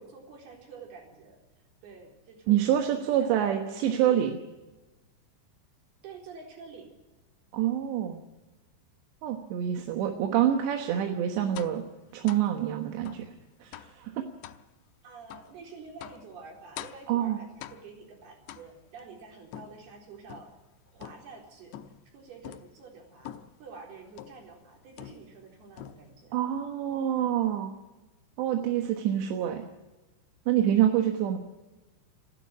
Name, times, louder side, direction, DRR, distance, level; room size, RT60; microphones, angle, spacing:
voice 1, 0.0-1.4 1.8-2.9 3.2-4.3 6.0-6.9 15.0-20.5 20.9-21.8 22.1-26.4, right 4 dB, 60° right, 1 dB, 5.8 m, -48 dB
voice 2, 2.5-4.4 7.5-8.2 9.2-11.8 12.1-13.3 13.6-14.2 17.1-17.4 26.3-27.7 28.4-29.7 30.5-31.4, right 11 dB, 75° right, 4 dB, 3.4 m, -26 dB
sound 1, 11.5-11.8 12.3-12.5 13.0-13.3 13.7-14.0 14.4-14.6 15.3-15.5 16.0-16.3 16.8-17.1 17.6-18.0 18.5-19.0 19.5-20.6 21.0-21.4 21.7-22.1 22.4-22.7 23.2-23.6 24.2-24.5 25.0-25.5 25.8-26.2, left 11 dB, 80° left, 3.0 m, -45 dB
28.5 x 11.5 x 9.6 m, 1.1 s
omnidirectional pair, 5.3 m